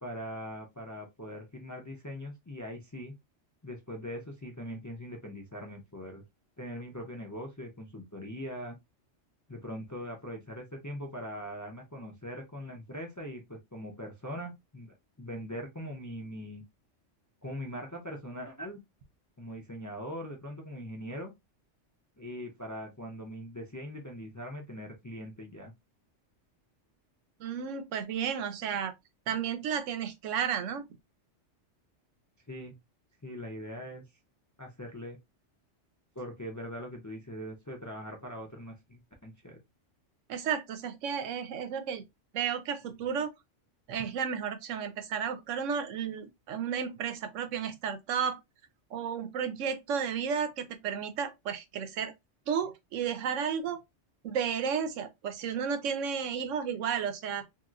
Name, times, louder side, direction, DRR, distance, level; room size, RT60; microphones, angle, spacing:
voice 1, 0.0-3.1 3.6-6.2 6.6-8.8 9.5-16.6 17.4-18.8 19.4-21.3 22.2-25.7 32.5-32.8 33.2-34.0 34.6-35.2 36.2-39.6, equal, 25° left, 0.4 m, -41 dB
voice 2, 27.4-28.9 29.3-30.9 40.3-42.0 42.3-43.3 43.9-48.4 48.9-52.1 52.5-53.8 54.2-57.4, right 7 dB, 90° right, 1.0 m, -33 dB
2.9 x 2.9 x 2.4 m
omnidirectional pair, 1.2 m